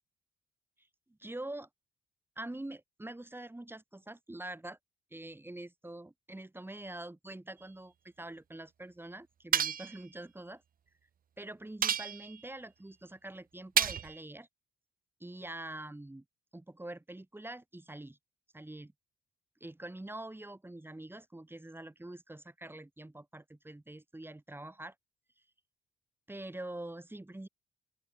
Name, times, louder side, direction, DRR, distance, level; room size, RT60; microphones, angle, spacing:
voice 1, 1.2-1.7 2.4-4.8 5.1-10.6 11.4-14.5 15.2-16.2 16.5-18.2 18.5-18.9 19.6-24.9 26.3-27.5, right 1 dB, 10° right, 7.9 m, -45 dB
sound 1, 9.5-10.0 11.8-12.4 13.8-14.2, right 8 dB, 45° right, 0.9 m, -30 dB
open air
cardioid pair, 90°, 20 cm